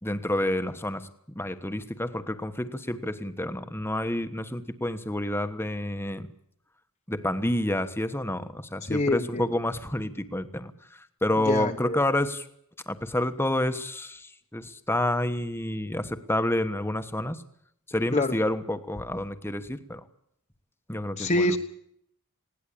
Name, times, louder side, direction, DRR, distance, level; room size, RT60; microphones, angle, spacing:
voice 1, 0.0-6.3 7.1-12.5 12.9-17.4 17.9-20.0 20.9-21.6, left 1 dB, 10° left, 10 dB, 1.2 m, -29 dB
voice 2, 8.9-9.4 11.4-12.0 18.1-18.4 21.2-21.6, left 1 dB, 35° left, 3 dB, 1.2 m, -26 dB
20.5 x 18.0 x 8.6 m, 0.71 s
head